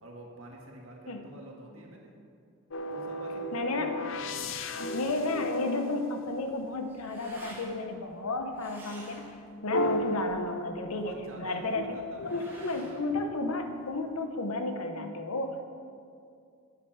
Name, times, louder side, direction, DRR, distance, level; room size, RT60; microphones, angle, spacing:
voice 1, 0.0-2.1 2.9-4.6 10.9-13.2, right 1 dB, 70° right, 0 dB, 1.8 m, -48 dB
sound 1, 2.7-6.9 9.7-11.2 11.7-13.5, left 1 dB, 60° left, 0.5 m, -35 dB
voice 2, 3.5-4.0 4.8-9.2 9.6-12.0 12.2-15.8, left 2 dB, 85° left, 6 dB, 1.0 m, -33 dB
sound 2, 6.3-14.1, right 1 dB, 10° right, 2.1 m, -52 dB
9.7 x 8.7 x 5.9 m, 2.4 s
head